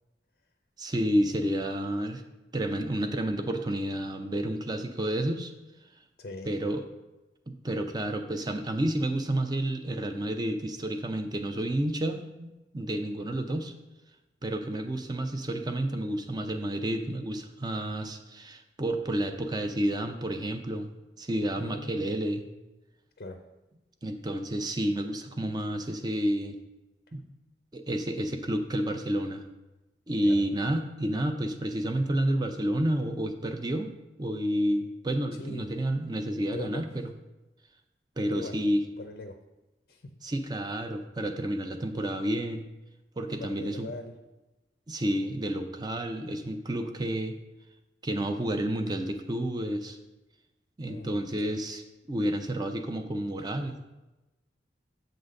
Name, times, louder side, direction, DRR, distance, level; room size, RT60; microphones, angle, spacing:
voice 1, 0.8-2.2 2.5-5.5 6.5-6.8 7.5-13.7 14.4-22.4 24.0-26.6 27.1-27.2 27.7-29.4 30.1-33.9 34.2-36.9 38.2-38.8 40.2-42.6 43.2-43.9 44.9-47.3 48.0-50.0 50.8-51.8 52.1-53.8, right 1 dB, 25° right, 6 dB, 0.6 m, -30 dB
voice 2, 6.2-6.6 21.6-22.2 23.2-23.5 30.2-30.5 35.3-35.8 36.5-36.9 38.3-38.7 39.0-39.4 39.9-40.3 43.3-44.2 50.9-51.6, left 2 dB, 55° left, 6 dB, 0.5 m, -42 dB
7.9 x 3.9 x 6.4 m, 1.1 s
head